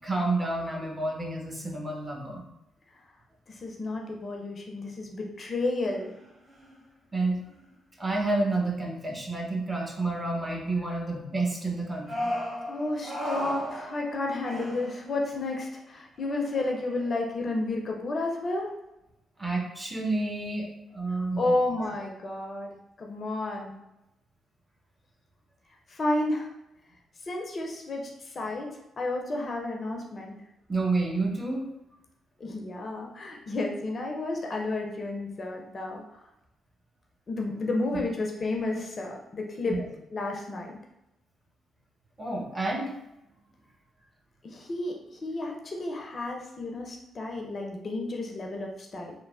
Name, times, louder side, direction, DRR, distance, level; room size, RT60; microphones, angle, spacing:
voice 1, 0.0-2.5 7.1-7.4 8.0-12.3 19.4-21.5 30.7-31.7 39.7-39.8 42.2-42.9, right 2 dB, 25° right, -1 dB, 0.8 m, -29 dB
voice 2, 3.5-6.1 12.7-18.7 21.1-23.8 25.9-26.5 27.2-28.7 29.0-30.4 32.4-36.0 37.3-39.8 40.1-40.8 44.4-49.1, left 2 dB, 45° left, 1 dB, 0.5 m, -31 dB
sound 1, 5.9-6.2 6.5-6.8 7.5-7.6 12.0-15.4 16.2-17.1, equal, 45° right, 1.1 m, -36 dB
3.0 x 2.1 x 2.4 m, 0.87 s
hypercardioid pair, 40°, 0 cm